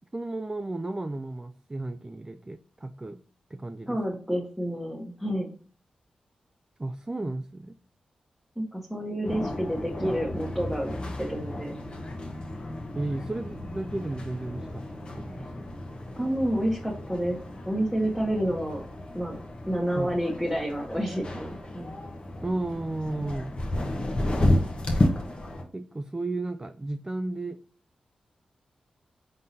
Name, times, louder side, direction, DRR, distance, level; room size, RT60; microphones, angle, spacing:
voice 1, 0.1-3.2 3.5-4.0 6.8-7.7 12.9-14.8 15.1-15.5 20.0-20.1 22.4-23.6 25.7-27.6, right 2 dB, 25° right, 7 dB, 0.4 m, -33 dB
voice 2, 3.9-5.5 8.6-10.9 11.2-11.7 16.2-17.4 17.7-18.8 19.1-19.4 19.7-21.9 24.9-25.0, equal, ahead, -3 dB, 1.1 m, -29 dB
sound 1, 9.2-25.6, left 1 dB, 45° left, 1.0 m, -32 dB
3.8 x 3.6 x 2.8 m, 0.43 s
cardioid pair, 50°, 2 cm